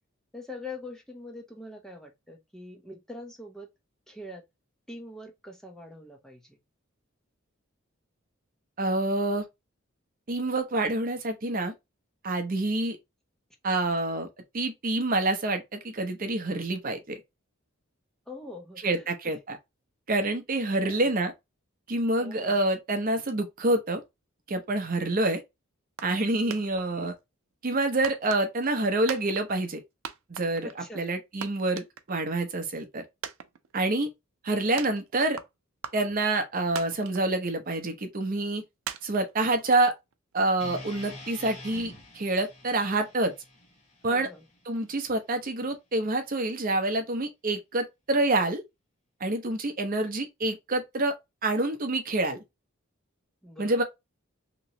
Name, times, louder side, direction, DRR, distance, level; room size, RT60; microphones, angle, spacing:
voice 1, 0.3-3.7 4.1-4.4 4.9-6.6 18.3-19.1 20.8-21.2 22.2-22.5 30.6-31.1 44.1-44.5 53.4-53.8, left 2 dB, ahead, 0.7 m, -43 dB
voice 2, 8.8-9.4 10.3-11.7 12.2-13.0 13.6-14.3 14.5-17.2 18.8-19.6 20.1-21.3 21.9-24.0 24.5-25.4 26.0-27.1 27.6-29.8 30.3-30.7 30.9-33.0 33.7-34.1 34.4-35.4 35.9-38.6 39.0-39.9 40.3-43.3 44.0-44.3 44.7-48.6 49.2-51.1 51.4-52.4 53.6-53.8, right 2 dB, 45° right, 0.7 m, -27 dB
sound 1, 26.0-26.3 26.5-27.2 28.0-28.8 29.1-29.8 30.0-30.8 31.2-31.3 31.4-32.4 32.7-32.8 33.2-34.0 34.8-35.5 35.8-36.4 36.8-37.5 37.8-37.9 38.9-40.1, right 8 dB, 85° right, 0.5 m, -39 dB
sound 2, 40.6-44.8, left 1 dB, 30° left, 1.5 m, -46 dB
3.0 x 2.9 x 2.6 m
head